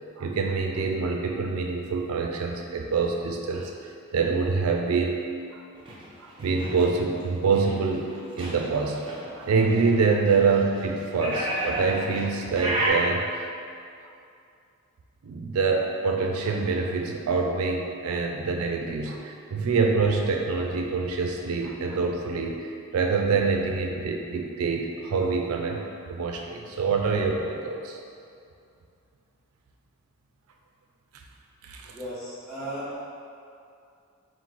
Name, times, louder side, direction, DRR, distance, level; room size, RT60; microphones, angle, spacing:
voice 1, 0.2-3.7 4.1-5.1 5.5-5.6 6.2-9.0 9.3-13.4 15.2-25.8 26.1-28.0 31.6-31.9, right 4 dB, 90° right, 2 dB, 0.4 m, -26 dB
sound 1, 5.8-12.9, right 1 dB, 25° right, 0.7 m, -34 dB
voice 2, 31.9-33.0, right 1 dB, 5° left, -13 dB, 1.3 m, -35 dB
4.5 x 2.0 x 3.9 m, 2.5 s
head